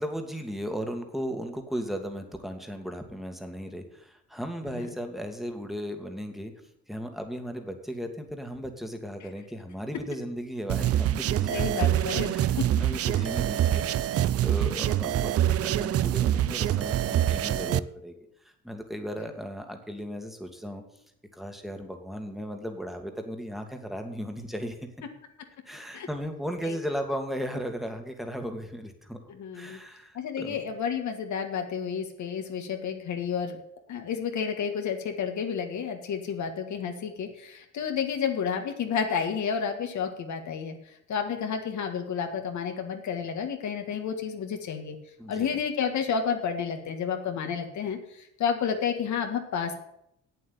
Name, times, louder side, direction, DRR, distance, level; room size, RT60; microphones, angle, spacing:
voice 1, 0.0-6.5 6.9-13.8 14.4-18.1 18.6-20.8 21.3-24.8 25.7-29.2 29.5-30.6 45.2-45.6, equal, ahead, 5 dB, 2.0 m, -36 dB
sound 1, 10.7-17.8, right 12 dB, 50° right, 0.5 m, -25 dB
voice 2, 11.5-12.7 25.9-26.1 26.6-26.8 29.3-29.8 30.1-33.6 33.9-40.8 41.1-45.0 45.3-49.7, left 7 dB, 70° left, 4 dB, 1.9 m, -31 dB
8.4 x 7.8 x 8.8 m, 0.75 s
cardioid pair, 90°, 30 cm